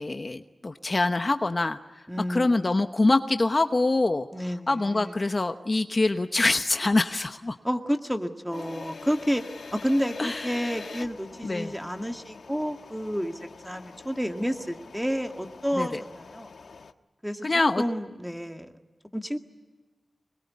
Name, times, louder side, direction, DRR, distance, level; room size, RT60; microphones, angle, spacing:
voice 1, 0.0-1.8 2.3-4.3 4.7-7.6 10.2-10.7 11.4-11.7 15.7-16.0 17.4-17.8, left 2 dB, 40° left, 8 dB, 1.0 m, -25 dB
voice 2, 2.1-2.8 4.3-5.2 7.6-9.4 9.7-16.5 17.2-17.5 17.8-18.7 19.1-19.4, equal, ahead, 5 dB, 2.0 m, -30 dB
sound 1, 8.5-16.9, left 4 dB, 80° left, 1.2 m, -44 dB
26.0 x 21.5 x 9.6 m, 1.2 s
wide cardioid pair, 75°, 0 cm